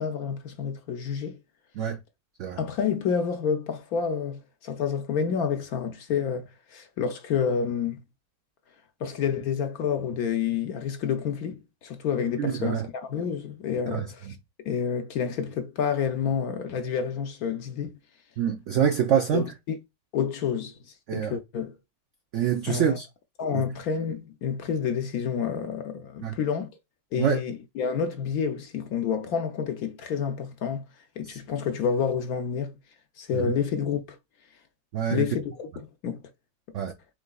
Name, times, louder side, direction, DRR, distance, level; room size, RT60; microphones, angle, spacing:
voice 1, 0.0-1.4 2.5-8.0 9.0-18.0 19.3-19.8 20.1-20.7 21.1-21.8 22.7-23.0 23.4-26.7 27.1-30.9 31.2-32.8 33.2-34.2 35.1-36.2, left 7 dB, 65° left, 1.0 m, -29 dB
voice 2, 12.4-12.9 13.9-14.3 18.4-19.5 21.1-21.4 22.3-23.1 23.5-23.6 26.2-26.4 27.2-27.4 31.2-31.4 33.3-33.5 34.9-35.3 36.7-36.9, right 8 dB, 90° right, 0.6 m, -26 dB
4.8 x 3.8 x 2.2 m
omnidirectional pair, 1.9 m